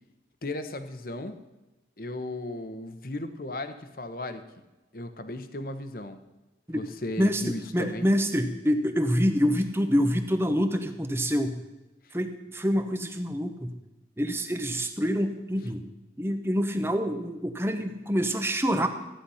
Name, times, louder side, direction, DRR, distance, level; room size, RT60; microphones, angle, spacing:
voice 1, 0.4-1.4 2.0-4.4 4.9-6.2 6.7-8.1, left 1 dB, 50° left, 9 dB, 1.1 m, -36 dB
voice 2, 7.2-11.6 12.1-13.7 14.2-15.9 16.2-18.9, equal, 15° right, 7 dB, 1.0 m, -26 dB
15.0 x 10.0 x 5.7 m, 1.1 s
head